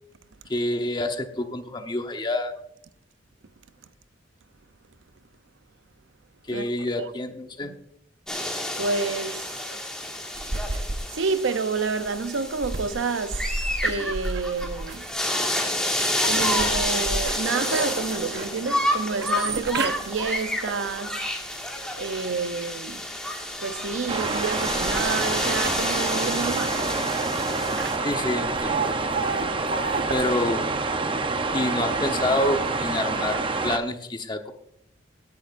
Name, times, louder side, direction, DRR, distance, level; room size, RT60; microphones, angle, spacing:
voice 1, 0.5-2.5 6.5-7.7 28.0-29.1 30.1-30.7 31.5-34.5, left 1 dB, 25° left, 1.0 m, -28 dB
sound 1, 8.3-28.0, left 1 dB, 5° left, 1.8 m, -29 dB
voice 2, 8.8-9.8 11.1-15.1 16.2-21.6 22.0-23.2 23.6-26.9, right 4 dB, 85° right, 0.6 m, -29 dB
sound 2, 10.3-22.1 22.6-30.2, right 3 dB, 60° right, 1.0 m, -33 dB
sound 3, 24.1-33.8, right 3 dB, 30° right, 0.7 m, -27 dB
16.5 x 10.5 x 2.6 m
head